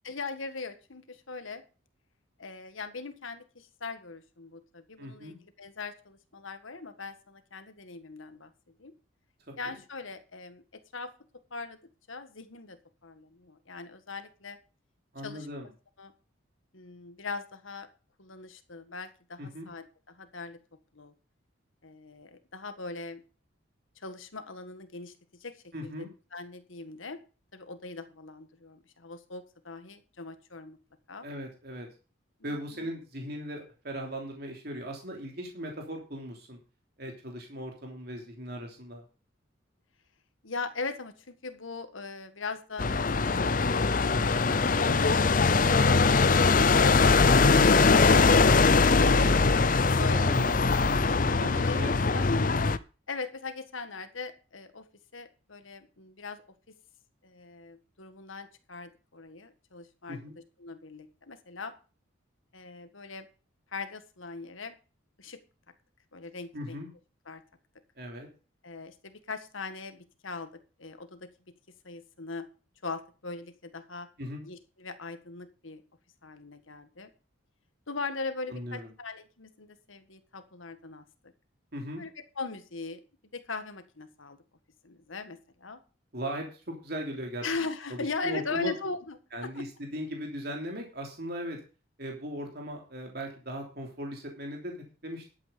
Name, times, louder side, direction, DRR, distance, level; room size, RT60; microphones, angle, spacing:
voice 1, 0.0-1.6 2.4-8.5 8.8-8.9 9.6-11.1 11.5-11.8 12.1-14.6 15.2-15.5 16.0-16.1 16.7-17.9 18.2-20.6 20.9-21.1 21.8-23.2 24.0-25.1 25.4-25.6 25.8-27.2 27.5-30.8 31.1-31.3 32.4-32.9 40.4-43.4 43.7-44.9 45.5-48.8 49.8-50.4 51.3-52.2 53.1-54.9 55.1-56.4 56.7-56.8 57.2-60.2 60.6-61.7 62.5-63.3 63.7-64.7 65.2-65.4 66.1-66.8 67.2-67.4 68.6-71.3 71.8-72.5 72.8-74.1 74.4-75.8 76.2-77.1 77.9-81.0 81.9-83.0 83.3-84.4 84.8-85.8 87.4-89.6, left 4 dB, 80° left, 9 dB, 1.7 m, -40 dB
voice 2, 5.0-5.4 9.5-9.8 15.1-15.7 19.4-19.7 25.7-26.1 31.2-31.9 32.4-36.6 37.0-39.0 44.8-45.3 49.0-49.4 50.0-50.6 51.4-52.6 60.1-60.4 66.5-66.9 68.0-68.3 74.2-74.4 78.5-78.9 81.7-82.0 86.1-87.5 87.9-88.0 88.2-88.7 89.3-91.6 92.0-94.7 95.0-95.3, equal, 50° right, 1 dB, 3.1 m, -38 dB
sound 1, 42.8-52.8, left 4 dB, 40° left, 0.6 m, -22 dB
11.5 x 8.7 x 5.2 m, 0.34 s
head